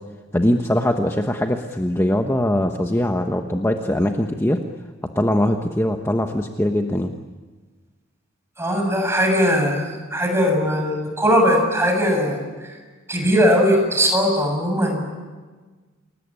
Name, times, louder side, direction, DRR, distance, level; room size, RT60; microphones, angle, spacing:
voice 1, 0.3-4.6 5.1-7.1, left 1 dB, 10° left, 4 dB, 1.2 m, -21 dB
voice 2, 8.6-12.4 13.1-15.1, equal, 15° right, 2 dB, 7.3 m, -19 dB
28.5 x 21.5 x 9.8 m, 1.4 s
head